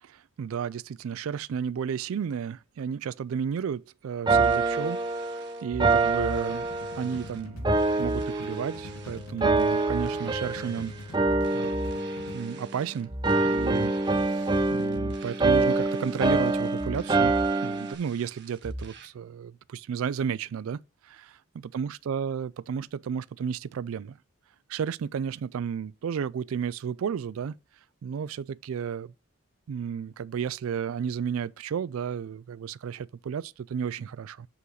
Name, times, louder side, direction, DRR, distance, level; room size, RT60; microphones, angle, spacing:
voice 1, 0.0-5.0 5.3-6.7 7.0-11.2 11.5-11.8 12.3-13.1 13.4-13.9 14.2-17.3 17.6-24.2 24.7-27.6 28.0-29.1 29.7-34.5, right 7 dB, 80° right, 0.3 m, -33 dB
sound 1, 4.3-7.2 7.6-9.0 9.4-10.8 11.1-12.9 13.2-17.9, right 3 dB, 20° right, 0.5 m, -26 dB
sound 2, 4.3-19.1, right 1 dB, 55° right, 1.4 m, -41 dB
sound 3, 6.0-12.4, left 2 dB, 90° left, 1.0 m, -45 dB
8.4 x 3.9 x 6.2 m
head